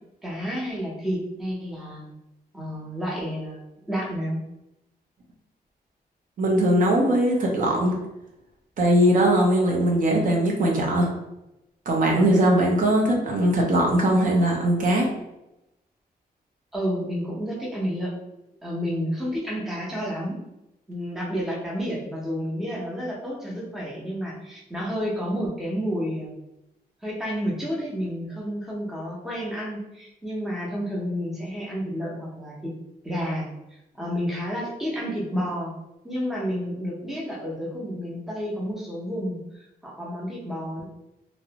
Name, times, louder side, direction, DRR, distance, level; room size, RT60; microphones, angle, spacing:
voice 1, 0.2-2.1 2.5-4.4 16.7-18.1 18.6-20.4 20.9-26.3 27.0-32.7 33.0-35.7 36.0-40.8, equal, ahead, -5 dB, 0.6 m, -30 dB
voice 2, 6.4-7.9 8.8-11.1 11.9-15.1, right 1 dB, 55° right, -1 dB, 0.5 m, -20 dB
2.5 x 2.0 x 2.8 m, 0.91 s
wide cardioid pair, 160°, 16 cm